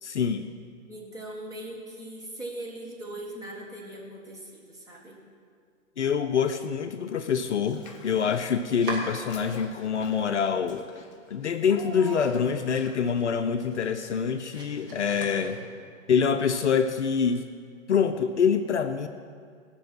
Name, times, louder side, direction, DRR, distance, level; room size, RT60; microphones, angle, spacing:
voice 1, 0.0-0.5 6.0-10.8 11.3-15.6 16.1-17.5 17.9-19.1, left 6 dB, 60° left, 8 dB, 0.7 m, -25 dB
voice 2, 0.9-5.2, right 1 dB, 10° right, -4 dB, 1.7 m, -40 dB
Domestic sounds home sounds, 7.3-9.9 10.2-11.0 11.3-11.4 11.9-12.0 12.3-16.0, right 2 dB, 40° right, 2.4 m, -42 dB
Child speech kid speaking / Bathtub (filling or washing), 7.6-8.6 8.9-13.2, left 4 dB, 25° left, 0.7 m, -45 dB
17.5 x 6.2 x 6.2 m, 2.1 s
figure-of-eight pair, 125°, 40 cm